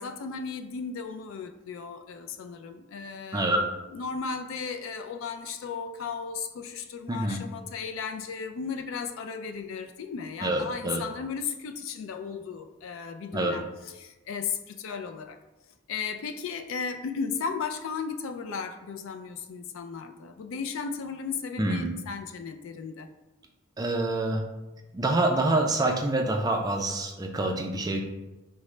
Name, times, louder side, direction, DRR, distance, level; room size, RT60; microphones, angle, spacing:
voice 1, 0.0-3.6 3.9-15.4 15.9-23.1, left 5 dB, 65° left, 7 dB, 0.3 m, -35 dB
voice 2, 7.1-7.4 10.4-11.0 13.3-13.6 21.6-21.9 23.8-24.4 24.9-28.0, right 2 dB, 20° right, 2 dB, 0.3 m, -26 dB
4.8 x 2.1 x 3.1 m, 1.1 s
head